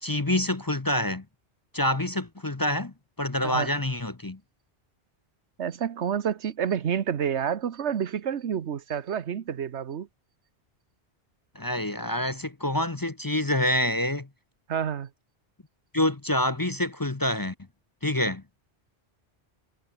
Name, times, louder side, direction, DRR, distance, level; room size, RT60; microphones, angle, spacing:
voice 1, 0.0-1.2 1.7-4.4 11.5-14.3 15.9-17.5 18.0-18.4, left 1 dB, 20° left, 0.8 m, -27 dB
voice 2, 5.6-10.1 14.7-15.1, right 8 dB, 85° right, 1.3 m, -29 dB
omnidirectional pair, 1.1 m